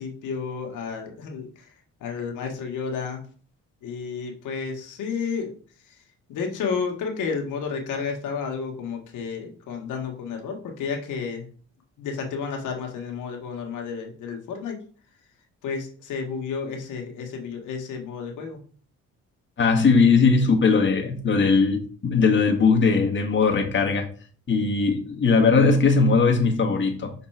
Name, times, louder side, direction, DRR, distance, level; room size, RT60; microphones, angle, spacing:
voice 1, 0.0-1.7 2.0-3.2 3.8-5.5 5.8-6.0 6.3-11.5 12.0-14.8 15.6-18.6, left 5 dB, 85° left, 1.8 m, -31 dB
voice 2, 19.6-24.1 24.5-27.1, left 4 dB, 40° left, 1.6 m, -19 dB
6.0 x 4.3 x 4.4 m
cardioid pair, 90°, 30 cm